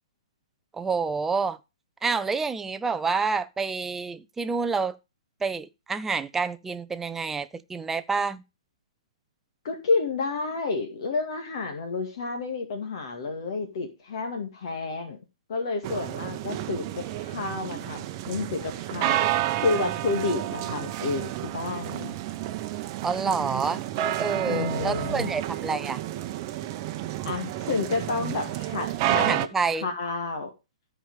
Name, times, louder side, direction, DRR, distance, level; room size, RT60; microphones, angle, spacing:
voice 1, 0.7-1.6 2.0-4.9 5.4-8.4 23.0-23.8 24.2-26.0 29.2-29.9, right 4 dB, 10° right, 0.6 m, -28 dB
voice 2, 9.6-15.2 15.5-19.2 19.6-22.2 24.5-25.3 27.2-29.4 29.8-30.5, left 3 dB, 50° left, 2.1 m, -30 dB
sound 1, 15.8-29.5, right 12 dB, 35° right, 0.9 m, -30 dB
14.0 x 5.0 x 4.9 m
figure-of-eight pair, 125°, 3 cm